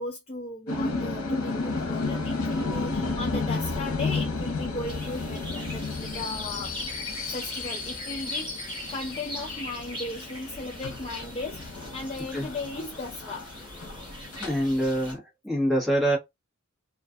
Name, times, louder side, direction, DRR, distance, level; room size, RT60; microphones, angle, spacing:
voice 1, 0.0-6.7 7.3-13.4, left 2 dB, 25° left, 0.4 m, -36 dB
sound 1, 0.7-15.2, left 3 dB, 85° left, 0.9 m, -33 dB
sound 2, 4.9-15.1, left 1 dB, 20° right, 1.0 m, -41 dB
voice 2, 14.4-16.2, right 1 dB, ahead, 1.1 m, -25 dB
2.4 x 2.4 x 2.4 m
head